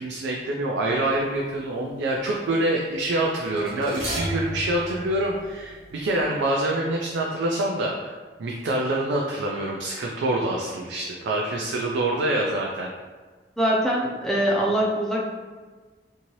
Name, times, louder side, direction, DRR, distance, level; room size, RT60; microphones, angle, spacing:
voice 1, 0.0-8.1 8.4-12.9, right 1 dB, 90° right, -1 dB, 0.4 m, -26 dB
sound 1, 1.0-1.3 3.5-6.2 6.5-6.6, equal, 50° right, 1.2 m, -34 dB
voice 2, 13.6-15.3, right 1 dB, ahead, -4 dB, 0.4 m, -23 dB
2.7 x 2.7 x 3.0 m, 1.4 s
head